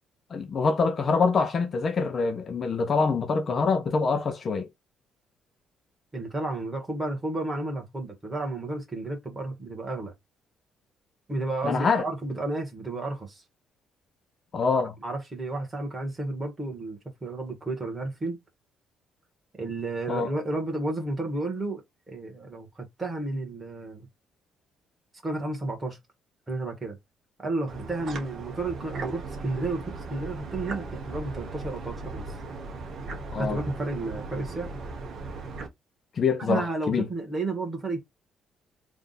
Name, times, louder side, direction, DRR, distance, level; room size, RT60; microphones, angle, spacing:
voice 1, 0.3-4.7 11.6-12.0 14.5-14.9 20.1-20.3 33.3-33.6 36.2-37.1, left 4 dB, 35° left, 0.6 m, -25 dB
voice 2, 6.1-10.1 11.3-13.4 14.7-18.4 19.6-21.8 22.1-24.1 25.2-26.0 26.5-27.0 27.4-32.3 33.4-34.7 36.5-38.0, right 2 dB, 15° right, 1.5 m, -32 dB
sound 1, 27.7-35.7, right 3 dB, 50° right, 1.0 m, -37 dB
3.4 x 2.5 x 4.1 m
cardioid pair, 150°, 0 cm